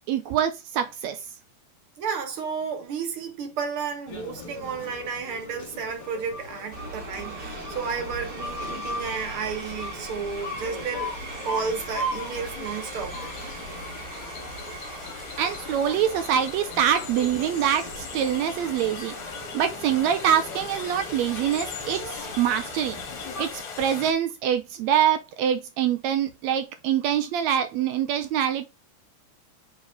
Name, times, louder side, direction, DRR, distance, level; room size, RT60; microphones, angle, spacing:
voice 1, 0.1-1.2 15.4-19.1 19.5-23.0 23.4-28.7, right 9 dB, 75° right, 1.7 m, -25 dB
voice 2, 2.0-11.1 11.4-13.3, right 5 dB, 55° right, 1.8 m, -32 dB
sound 1, 4.1-23.5, left 1 dB, 35° left, 2.6 m, -39 dB
sound 2, 6.1-24.1, left 6 dB, 55° left, 2.0 m, -41 dB
sound 3, 6.7-23.6, right 3 dB, 35° right, 2.6 m, -41 dB
5.1 x 4.9 x 3.7 m
omnidirectional pair, 3.5 m